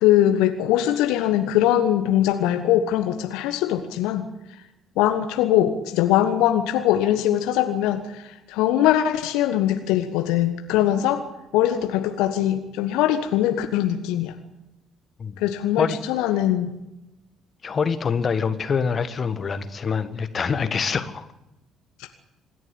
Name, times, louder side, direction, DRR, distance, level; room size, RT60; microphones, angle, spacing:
voice 1, 0.0-4.3 5.0-11.2 11.5-14.3 15.4-16.8 22.0-22.1, left 12 dB, 65° left, 8 dB, 1.3 m, -21 dB
voice 2, 17.6-21.3, left 6 dB, 40° left, 12 dB, 1.7 m, -25 dB
26.0 x 11.0 x 9.8 m, 0.94 s
figure-of-eight pair, 50°, 0 cm